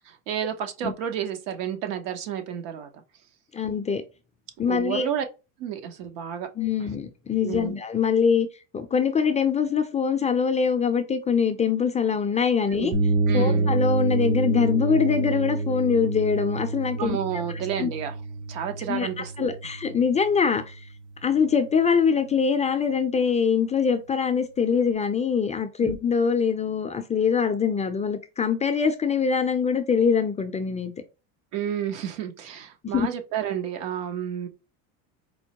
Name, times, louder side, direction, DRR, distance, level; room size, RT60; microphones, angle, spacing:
voice 1, 0.1-3.0 4.7-5.2 5.6-6.5 7.4-7.7 12.7-12.9 13.3-13.7 17.0-18.2 18.5-19.5 25.8-25.9 31.5-34.5, right 9 dB, 80° right, 0.9 m, -31 dB
voice 2, 3.5-4.0 4.6-5.1 6.6-8.5 8.7-12.9 13.3-17.2 17.8-17.9 18.9-20.8 21.2-30.9 32.9-33.1, left 6 dB, 20° left, 0.4 m, -23 dB
sound 1, 12.9-20.6, right 3 dB, 65° right, 1.3 m, -27 dB
4.4 x 2.1 x 2.8 m
supercardioid pair, 115°, 38 cm